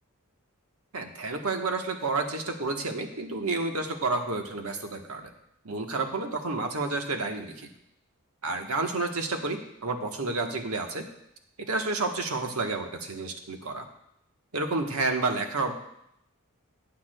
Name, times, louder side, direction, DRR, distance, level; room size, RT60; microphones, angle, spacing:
voice 1, 0.9-5.3 5.6-7.7 8.4-11.0 11.6-13.9 14.5-15.8, right 3 dB, 85° right, 4 dB, 1.2 m, -30 dB
18.0 x 8.3 x 2.2 m, 0.78 s
head